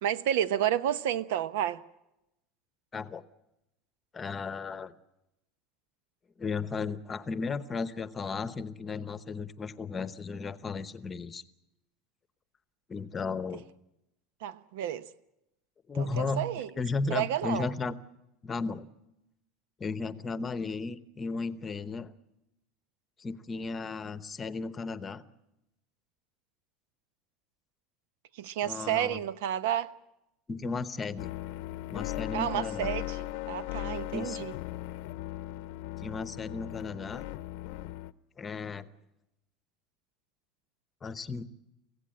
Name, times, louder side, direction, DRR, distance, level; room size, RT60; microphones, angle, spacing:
voice 1, 0.0-1.8 14.4-15.1 16.0-16.7 17.1-17.7 28.4-29.9 32.3-34.5, right 11 dB, 85° right, 1.0 m, -31 dB
voice 2, 2.9-3.2 4.1-4.9 6.4-11.4 12.9-13.6 15.9-16.4 16.8-18.0 18.4-18.9 19.8-22.1 23.2-25.2 28.6-29.2 30.5-31.3 31.9-32.9 34.1-34.5 36.0-37.2 38.4-38.9 41.0-41.4, left 4 dB, 15° left, 0.9 m, -35 dB
sound 1, 31.2-38.1, left 17 dB, 65° left, 0.7 m, -38 dB
25.0 x 16.5 x 8.8 m
cardioid pair, 160°, 0 cm